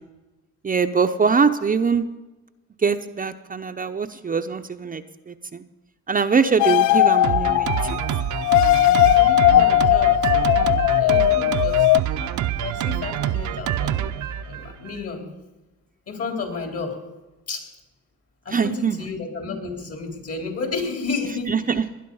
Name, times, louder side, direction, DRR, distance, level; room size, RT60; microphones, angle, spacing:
voice 1, 0.6-2.0 2.8-5.6 6.1-8.0 9.0-9.2 18.5-19.0 21.5-21.8, right 5 dB, 30° right, 7 dB, 0.7 m, -23 dB
sound 1, 6.6-12.0, left 14 dB, 75° left, 0.5 m, -18 dB
voice 2, 6.6-7.0 8.8-11.9 12.2-14.1 14.4-15.2 16.1-17.0 17.5-17.7 18.5-21.5, left 4 dB, 50° left, 3 dB, 3.8 m, -32 dB
Drum kit, 7.2-15.0, right 11 dB, 70° right, 0.8 m, -26 dB
19.5 x 10.5 x 5.5 m, 1.1 s
cardioid pair, 90°, 30 cm